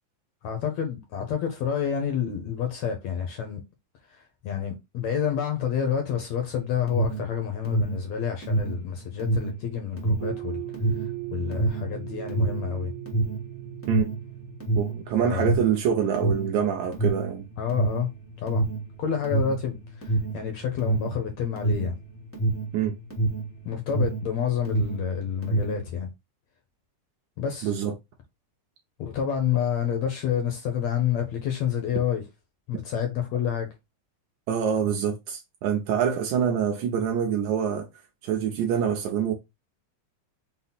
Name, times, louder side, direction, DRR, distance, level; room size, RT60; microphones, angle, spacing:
voice 1, 0.4-3.6 4.1-10.6 11.3-12.9 15.2-15.6 17.6-18.1 18.4-18.6 19.0-22.0 23.6-26.1 27.4-27.7 29.0-32.2 32.7-33.7, left 8 dB, 70° left, 1.7 m, -28 dB
Alarm, 6.5-24.3 24.6-25.9, right 2 dB, 20° left, 0.4 m, -27 dB
sound 1, 10.2-15.4, right 19 dB, 55° right, 0.9 m, -38 dB
voice 2, 14.8-17.4 22.7-23.0 27.6-27.9 34.5-37.9 38.2-39.3, right 8 dB, 80° right, 1.8 m, -25 dB
5.7 x 2.0 x 3.9 m
omnidirectional pair, 3.8 m